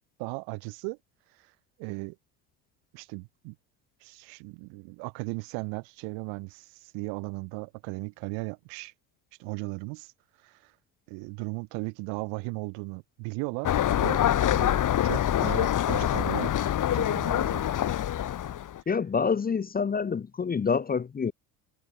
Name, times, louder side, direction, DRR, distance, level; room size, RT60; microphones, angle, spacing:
voice 1, 0.2-1.0 1.8-2.2 2.9-3.6 4.0-8.9 9.4-10.1 10.4-10.7 11.1-14.2 14.5-17.7, right 37 dB, 80° right, 3.9 m, -37 dB
sound 1, 13.6-18.8, left 11 dB, 45° left, 2.0 m, -25 dB
voice 2, 18.9-21.3, left 5 dB, 20° left, 0.8 m, -27 dB
supercardioid pair, 95°, 44 cm